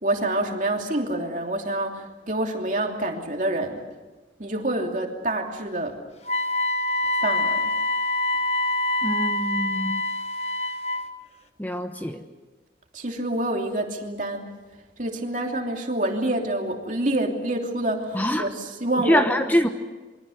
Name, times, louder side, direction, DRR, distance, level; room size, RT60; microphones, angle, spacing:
voice 1, 0.0-3.8 4.4-6.0 7.2-7.7 12.9-14.6 15.0-19.2, right 1 dB, 45° right, 2 dB, 2.9 m, -27 dB
Wind instrument woodwind instrument, 6.2-11.1, left 2 dB, 35° left, 1.3 m, -25 dB
voice 2, 9.0-10.0 11.6-12.2 18.1-18.5 19.0-19.7, equal, 10° left, 6 dB, 1.0 m, -24 dB
27.5 x 23.5 x 6.5 m, 1.3 s
head